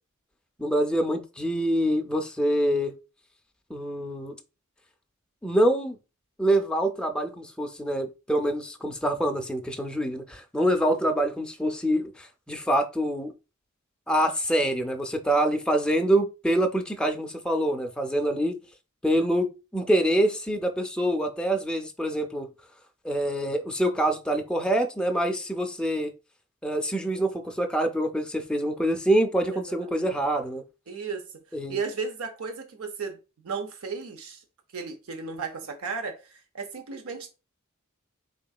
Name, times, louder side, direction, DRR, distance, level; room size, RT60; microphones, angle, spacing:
voice 1, 0.6-2.9 3.7-4.4 5.4-6.0 6.4-13.3 14.1-18.6 19.0-22.5 23.0-26.1 26.6-30.6 31.5-31.8, right 1 dB, 5° left, 0.4 m, -25 dB
voice 2, 29.5-30.1 30.9-31.3 31.7-34.4 34.7-37.3, right 5 dB, 85° right, 0.6 m, -35 dB
3.7 x 3.5 x 2.3 m
head